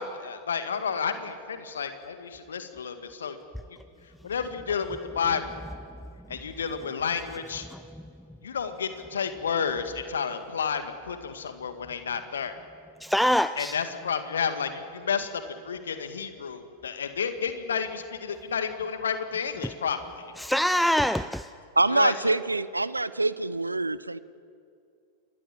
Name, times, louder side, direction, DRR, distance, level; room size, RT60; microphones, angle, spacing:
voice 1, 0.0-3.4 4.2-5.6 6.3-7.7 8.4-12.6 13.6-20.3 21.9-22.3, left 6 dB, 65° left, 2.0 m, -31 dB
voice 2, 13.0-13.8 20.4-21.5, equal, ahead, 0.5 m, -24 dB
voice 3, 21.8-24.2, right 2 dB, 80° right, 0.6 m, -25 dB
27.5 x 21.5 x 7.4 m
figure-of-eight pair, 90°, 0 cm